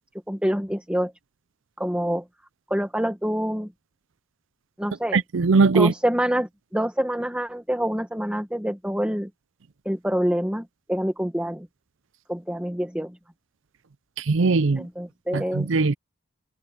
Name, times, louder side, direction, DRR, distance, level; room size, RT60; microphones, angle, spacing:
voice 1, 0.3-1.1 1.8-2.2 2.7-3.7 4.8-5.2 5.7-9.3 9.9-11.7 12.3-13.2 14.8-15.7, equal, 5° right, 1.7 m, -26 dB
voice 2, 5.1-5.9 14.2-14.8 15.3-15.9, right 4 dB, 65° right, 0.5 m, -20 dB
head